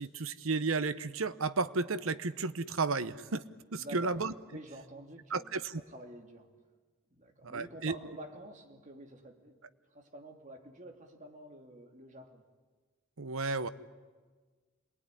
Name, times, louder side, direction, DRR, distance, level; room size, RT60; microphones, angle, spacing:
voice 1, 0.0-3.4 3.7-4.3 5.3-5.6 7.4-7.9 13.2-13.7, right 4 dB, 80° right, 14 dB, 0.9 m, -33 dB
voice 2, 3.8-4.2 4.5-6.5 7.1-9.6 9.9-12.4, right 1 dB, 35° right, 3 dB, 2.7 m, -49 dB
27.5 x 20.5 x 9.9 m, 1.4 s
head